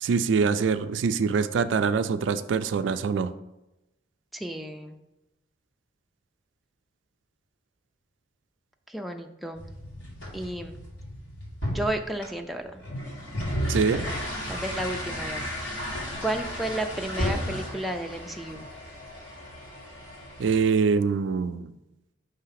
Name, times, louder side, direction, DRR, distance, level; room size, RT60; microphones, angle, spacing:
voice 1, 0.0-3.3 13.7-14.1 20.4-21.7, right 5 dB, 85° right, 12 dB, 0.4 m, -24 dB
voice 2, 4.3-5.0 8.9-9.6 10.3-10.8 11.7-12.8 13.9-14.1 14.5-15.9 16.2-18.7, right 1 dB, ahead, 3 dB, 0.4 m, -33 dB
sound 1, 9.5-20.6, equal, 90° left, 2.2 m, -34 dB
5.6 x 3.3 x 5.7 m, 0.93 s
head